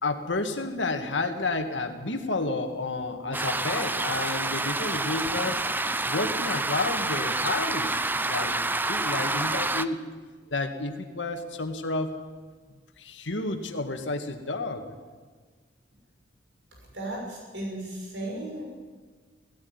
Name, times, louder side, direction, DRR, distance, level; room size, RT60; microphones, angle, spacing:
voice 1, 0.0-5.6 6.1-10.1 10.5-12.1 13.0-14.9, left 3 dB, 85° left, 6 dB, 2.0 m, -31 dB
sound 1, 3.3-9.9, right 2 dB, 10° right, 0.6 m, -28 dB
voice 2, 16.9-18.6, right 1 dB, 70° right, -1 dB, 6.3 m, -35 dB
17.0 x 16.5 x 9.7 m, 1.5 s
head